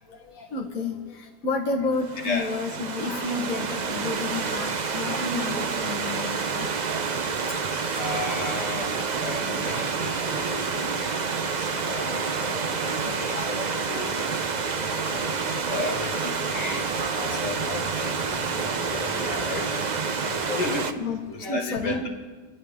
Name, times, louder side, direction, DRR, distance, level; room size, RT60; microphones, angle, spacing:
voice 1, 0.0-6.7 11.1-11.2 12.4-14.2 14.9-15.6 16.9-19.9 20.2-20.6 21.0-22.1, left 3 dB, 55° left, -1 dB, 1.6 m, -33 dB
Stream / Liquid, 2.0-20.9, right 5 dB, 55° right, 0.5 m, -28 dB
sound 1, 6.9-21.5, left 2 dB, 15° left, 0.5 m, -46 dB
voice 2, 7.9-14.2 15.1-17.6 18.0-19.7 20.6-20.8 21.5-22.1, left 3 dB, 75° left, 2 dB, 2.6 m, -35 dB
28.0 x 11.0 x 3.6 m, 1.3 s
omnidirectional pair, 1.8 m